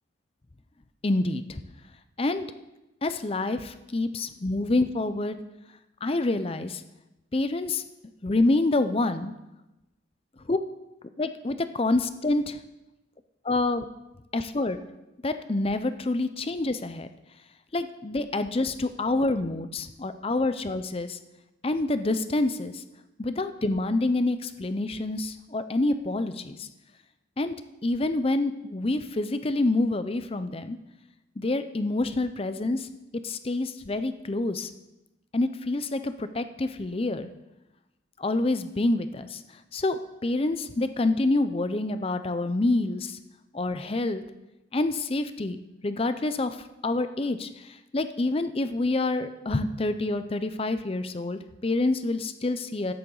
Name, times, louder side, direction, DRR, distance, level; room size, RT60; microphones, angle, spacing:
voice 1, 1.0-1.6 2.2-2.5 3.0-5.4 6.0-6.8 7.3-7.8 8.2-9.3 10.5-10.6 11.2-12.6 13.5-13.9 14.3-14.8 15.2-17.1 17.7-21.2 21.6-22.8 23.2-26.7 27.4-27.5 27.8-30.8 31.4-32.9 33.2-34.7 35.3-37.3 38.2-39.4 39.7-43.2 43.5-44.2 44.7-46.6 46.8-52.9, left 2 dB, 30° left, 11 dB, 0.5 m, -27 dB
13.0 x 9.7 x 3.9 m, 0.98 s
head